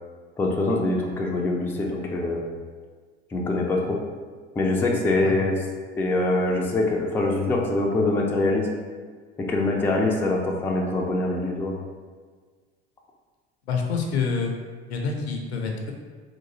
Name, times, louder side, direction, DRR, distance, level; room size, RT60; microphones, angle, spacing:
voice 1, 0.4-2.5 3.3-4.0 4.6-5.6 6.0-8.7 9.4-11.7, left 2 dB, 5° left, -1 dB, 0.3 m, -24 dB
voice 2, 13.7-14.5 14.9-15.9, left 5 dB, 75° left, 2 dB, 0.6 m, -27 dB
3.7 x 2.5 x 2.8 m, 1.5 s
figure-of-eight pair, 65°, 33 cm